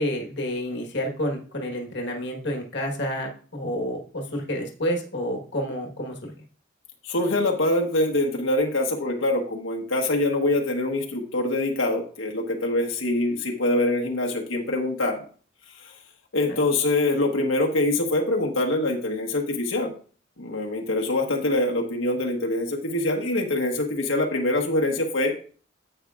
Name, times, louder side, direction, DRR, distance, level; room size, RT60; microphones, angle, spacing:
voice 1, 0.0-6.3 16.5-16.6, equal, 60° left, 1 dB, 1.3 m, -29 dB
voice 2, 7.0-15.2 16.3-19.9 20.4-25.3, left 2 dB, 85° left, 1 dB, 1.2 m, -24 dB
10.0 x 8.0 x 2.4 m, 0.43 s
head